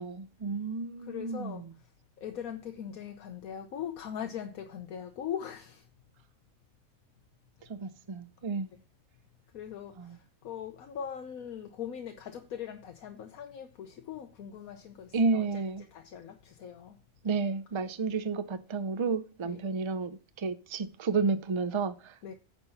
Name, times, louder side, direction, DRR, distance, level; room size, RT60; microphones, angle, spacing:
voice 1, 0.0-1.7 7.7-8.7 10.0-10.2 15.1-15.9 17.2-22.3, right 4 dB, 40° right, 0.4 m, -31 dB
voice 2, 1.0-1.7 2.2-5.9 9.5-15.6 15.9-17.0 19.4-19.6 22.2-22.3, left 8 dB, 85° left, 1.3 m, -41 dB
9.6 x 4.5 x 5.6 m
omnidirectional pair, 1.4 m